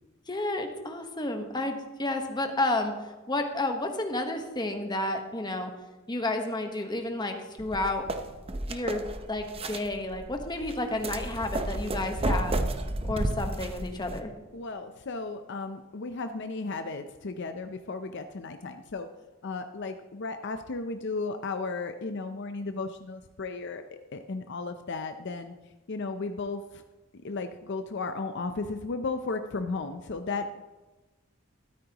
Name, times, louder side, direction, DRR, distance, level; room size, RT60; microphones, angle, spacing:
voice 1, 0.3-2.9 3.3-5.7 6.1-8.0 8.7-12.5 13.1-14.3, left 2 dB, 20° left, 4 dB, 1.2 m, -31 dB
sound 1, 7.6-14.2, right 1 dB, 30° right, 0.7 m, -32 dB
voice 2, 14.5-19.1 19.4-25.5 25.9-26.8 27.2-30.6, left 3 dB, 55° left, 7 dB, 0.6 m, -35 dB
13.0 x 13.0 x 2.9 m, 1.1 s
head